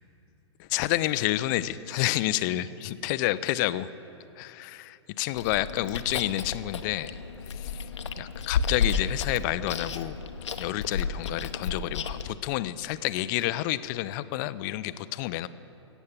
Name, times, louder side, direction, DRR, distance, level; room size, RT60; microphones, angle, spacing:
voice 1, 0.6-3.9 4.4-7.2 7.5-7.9 8.2-10.2 10.6-15.5, left 15 dB, 40° left, 15 dB, 0.5 m, -29 dB
Chewing mastication, 5.4-12.3, left 6 dB, 75° left, 0.8 m, -32 dB
15.0 x 8.3 x 7.3 m, 2.7 s
hypercardioid pair, 115°, 15 cm